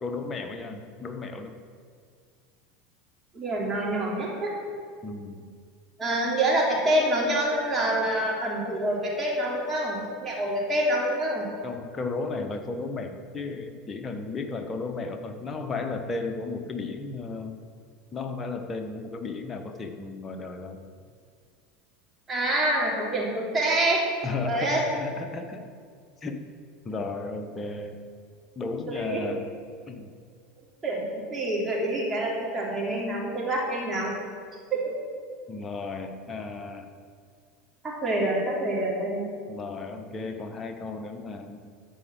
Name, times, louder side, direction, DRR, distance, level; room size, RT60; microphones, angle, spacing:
voice 1, 0.0-1.5 5.0-5.5 11.6-17.6 18.1-20.8 24.2-25.6 26.2-26.5 26.8-28.0 28.5-29.5 29.9-30.1 35.5-36.9 39.5-41.6, left 3 dB, 25° left, 5 dB, 1.2 m, -34 dB
voice 2, 3.3-4.5 6.0-11.5 22.3-24.1 24.4-24.8 28.9-29.2 30.8-34.1 34.7-34.9 37.8-39.3, right 1 dB, 25° right, -3 dB, 3.1 m, -26 dB
13.0 x 4.9 x 7.6 m, 2.1 s
hypercardioid pair, 80°, 0 cm